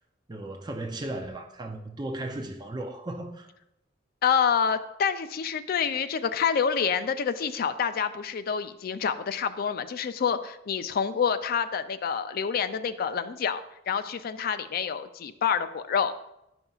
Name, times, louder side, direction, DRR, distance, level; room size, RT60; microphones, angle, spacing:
voice 1, 0.3-3.5, right 1 dB, 25° right, 0.5 m, -36 dB
voice 2, 4.2-16.3, left 7 dB, 50° left, 0.4 m, -27 dB
10.5 x 5.3 x 2.4 m
head